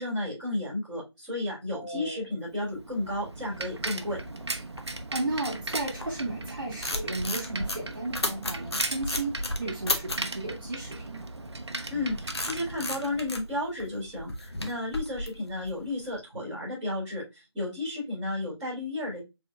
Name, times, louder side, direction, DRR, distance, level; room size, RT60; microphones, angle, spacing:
voice 1, 0.0-4.2 11.9-19.2, left 1 dB, 5° right, 2.1 m, -33 dB
voice 2, 1.7-2.2 5.1-11.3, right 2 dB, 50° right, 2.0 m, -34 dB
Bicycle, 2.6-13.5, right 2 dB, 70° right, 0.7 m, -38 dB
sound 1, 4.1-6.3 6.6-10.3 11.6-16.1, left 1 dB, 65° left, 1.0 m, -34 dB
4.4 x 3.7 x 2.3 m
figure-of-eight pair, 175°, 15 cm